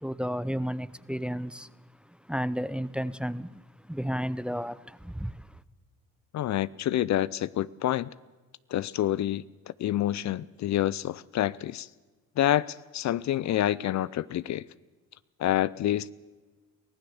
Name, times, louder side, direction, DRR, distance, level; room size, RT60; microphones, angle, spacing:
voice 1, 0.0-1.7 2.3-3.6 3.9-5.5, equal, 5° right, 0.7 m, -32 dB
voice 2, 6.3-8.1 8.7-11.9 12.4-14.6 15.4-16.1, left 12 dB, 50° left, 0.6 m, -28 dB
23.5 x 16.0 x 7.1 m
supercardioid pair, 65°, 35 cm